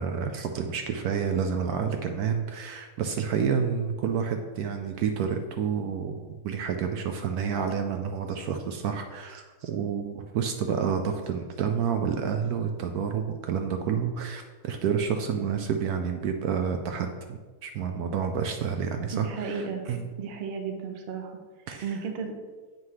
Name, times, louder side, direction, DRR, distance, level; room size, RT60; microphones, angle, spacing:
voice 1, 0.0-20.1 21.7-21.9, right 7 dB, 70° right, 5 dB, 1.0 m, -29 dB
voice 2, 19.1-19.8 20.2-21.4 21.8-22.3, right 5 dB, 50° right, 4 dB, 0.8 m, -33 dB
7.5 x 3.2 x 5.6 m, 1.4 s
omnidirectional pair, 1.8 m